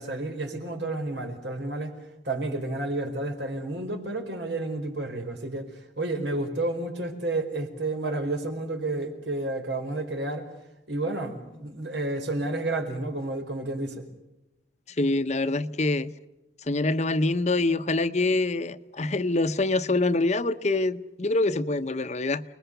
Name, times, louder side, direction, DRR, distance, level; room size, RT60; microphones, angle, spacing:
voice 1, 0.0-1.9 2.2-5.7 6.0-10.5 10.9-14.1, right 2 dB, 85° right, 5.0 m, -31 dB
voice 2, 15.0-16.1 16.7-22.4, left 2 dB, 40° left, 0.9 m, -25 dB
29.0 x 21.0 x 6.9 m
head